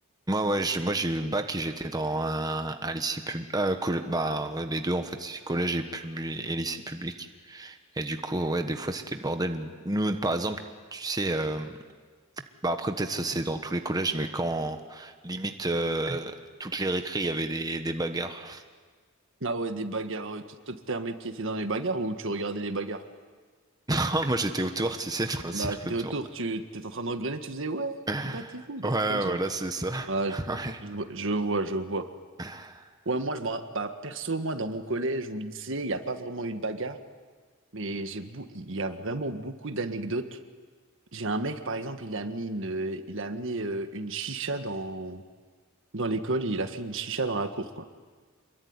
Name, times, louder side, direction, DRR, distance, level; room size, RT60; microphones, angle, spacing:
voice 1, 0.3-10.6 10.9-11.8 12.6-16.3 16.6-18.6 23.9-26.1 28.1-28.6 28.8-30.8 32.4-32.8, right 2 dB, 20° right, 6 dB, 1.3 m, -30 dB
voice 2, 19.4-23.0 25.5-28.0 28.2-29.4 30.1-30.4 30.8-32.0 33.0-37.0 37.7-40.4 41.1-45.2 45.9-47.8, right 2 dB, 65° right, 8 dB, 1.6 m, -32 dB
27.0 x 22.5 x 9.7 m, 1.5 s
head